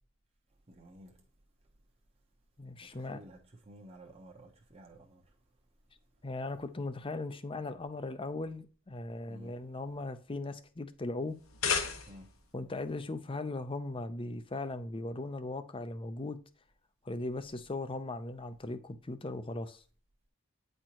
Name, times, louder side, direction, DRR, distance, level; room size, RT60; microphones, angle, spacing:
voice 1, 0.7-1.1 3.1-3.4 3.7-5.2 9.3-9.5 12.1-12.3, right 1 dB, 30° right, 1.0 m, -52 dB
voice 2, 2.6-3.2 6.2-11.4 12.5-16.4 17.0-19.8, left 2 dB, 25° left, 0.6 m, -38 dB
sound 1, 11.3-12.5, left 6 dB, 90° left, 1.1 m, -33 dB
9.1 x 4.4 x 3.0 m
head